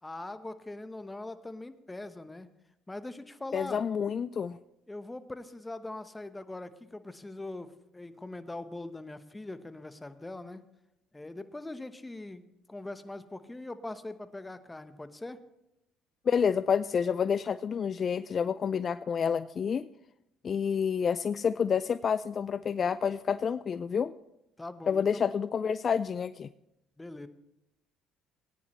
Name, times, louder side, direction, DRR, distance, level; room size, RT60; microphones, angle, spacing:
voice 1, 0.0-2.5 2.9-3.8 4.9-10.6 11.1-15.4 24.6-25.3 27.0-27.3, left 2 dB, 15° left, 11 dB, 1.0 m, -42 dB
voice 2, 3.5-4.6 16.3-19.9 20.4-24.1 24.9-26.5, left 7 dB, 45° left, 15 dB, 0.3 m, -29 dB
18.0 x 10.0 x 3.1 m, 0.86 s
hypercardioid pair, 60°, 0 cm